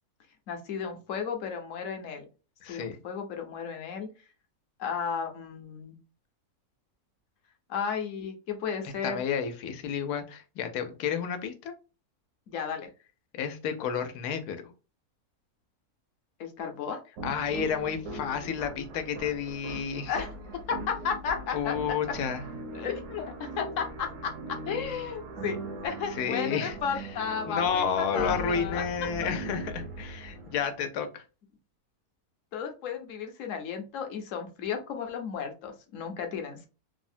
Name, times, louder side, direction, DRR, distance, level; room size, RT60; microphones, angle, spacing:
voice 1, 0.5-2.2 2.7-4.1 4.8-6.0 7.7-9.2 12.5-12.9 16.4-17.0 20.1-20.3 20.7-22.0 22.7-28.8 32.5-36.7, left 6 dB, 65° left, 5 dB, 0.9 m, -34 dB
voice 2, 2.6-3.0 9.0-11.7 13.3-14.6 17.2-20.1 21.5-22.4 26.2-27.0 27.5-31.2, left 7 dB, 85° left, 8 dB, 1.1 m, -31 dB
sound 1, 17.2-30.8, right 2 dB, 65° right, 0.9 m, -40 dB
3.3 x 2.0 x 2.5 m, 0.32 s
omnidirectional pair, 1.6 m